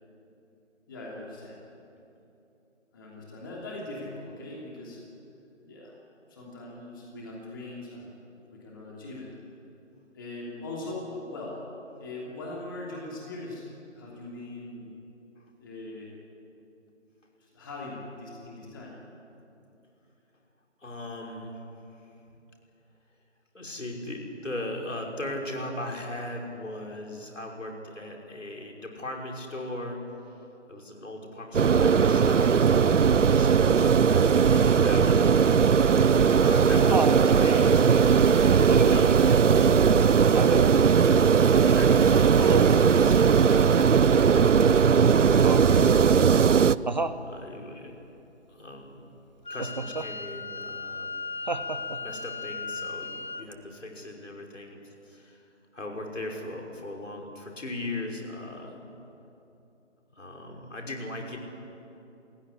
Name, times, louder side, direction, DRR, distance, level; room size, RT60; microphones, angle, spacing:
voice 1, 0.9-1.6 2.9-5.0 5.6-5.9 6.3-8.1 8.5-9.3 10.1-11.6 12.0-13.7 13.9-14.9 15.6-16.1 17.5-19.0, left 2 dB, 15° left, -4 dB, 3.0 m, -40 dB
voice 2, 20.8-21.6 23.5-30.0 30.7-33.0 33.3-35.4 36.4-40.3 41.5-44.2 45.1-45.7 47.3-48.0 48.5-49.1 49.5-51.1 52.0-55.4 55.7-58.9 60.1-61.4, left 1 dB, 75° left, 0 dB, 5.8 m, -38 dB
sound 1, 31.5-46.8, right 6 dB, 75° right, 0.7 m, -19 dB
Laughter, 36.0-37.3 38.7-39.2 40.3-40.8 42.4-42.9 45.4-45.9 46.9-47.2 49.6-50.1 51.5-52.1 53.5-53.6, right 3 dB, 35° right, 0.9 m, -30 dB
Wind instrument woodwind instrument, 49.4-53.4, left 4 dB, 40° left, 0.7 m, -36 dB
29.0 x 16.5 x 9.9 m, 2.8 s
figure-of-eight pair, 170°, 37 cm